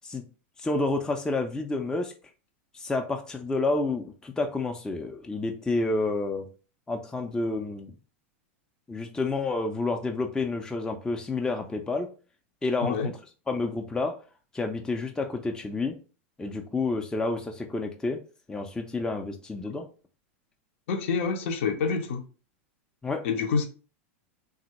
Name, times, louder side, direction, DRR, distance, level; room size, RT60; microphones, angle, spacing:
voice 1, 0.6-2.1 2.7-6.5 6.9-7.9 8.9-12.1 12.6-13.1 13.5-14.2 14.5-16.0 16.4-18.2 18.5-19.9 23.0-23.2, left 3 dB, 10° left, 0.4 m, -29 dB
voice 2, 20.9-22.2 23.2-23.6, left 5 dB, 70° left, 0.6 m, -27 dB
3.4 x 2.0 x 2.9 m
hypercardioid pair, 110°, 7 cm